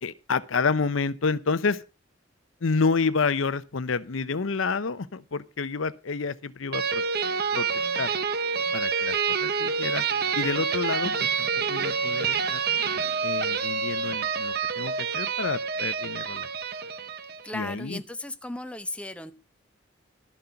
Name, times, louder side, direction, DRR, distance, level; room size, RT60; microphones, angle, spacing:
voice 1, 0.0-1.8 2.6-7.0 7.5-8.1 8.7-9.2 9.4-10.0 10.3-12.6 13.2-16.5 17.5-18.0, left 4 dB, 85° left, 0.7 m, -29 dB
sound 1, 6.7-17.5, right 6 dB, 50° right, 0.8 m, -27 dB
voice 2, 17.4-19.3, left 2 dB, 5° left, 0.7 m, -35 dB
12.5 x 7.8 x 5.7 m
head